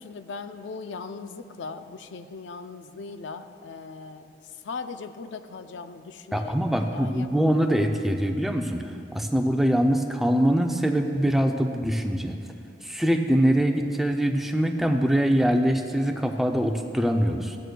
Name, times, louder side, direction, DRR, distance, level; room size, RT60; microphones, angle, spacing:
voice 1, 0.0-4.3 4.6-6.6 6.9-7.3, left 4 dB, 85° left, 9 dB, 0.4 m, -39 dB
voice 2, 6.3-12.4 12.8-17.6, equal, ahead, 3 dB, 0.4 m, -23 dB
14.0 x 9.0 x 2.2 m, 2.5 s
head